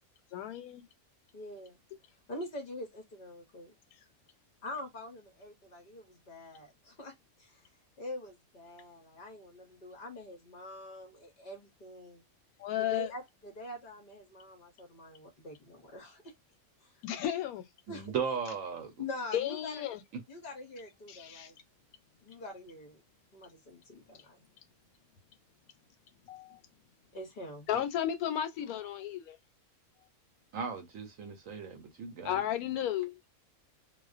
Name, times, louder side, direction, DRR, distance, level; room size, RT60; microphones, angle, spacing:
voice 1, 0.3-0.9 12.6-13.1 17.0-17.6 19.3-20.0 21.1-21.5 26.2-26.6 27.7-29.4 32.2-33.3, left 11 dB, 85° left, 1.1 m, -34 dB
voice 2, 1.3-1.8 2.3-3.7 4.6-7.1 7.4-7.7 8.0-12.2 12.8-16.3 16.8-17.0 17.9-18.1 19.0-19.8 20.3-21.6 22.2-23.0 23.3-24.4 27.1-27.7, left 1 dB, 50° left, 0.6 m, -45 dB
voice 3, 17.9-18.9 30.5-32.3, right 6 dB, 70° right, 1.0 m, -36 dB
2.4 x 2.1 x 2.4 m
omnidirectional pair, 1.5 m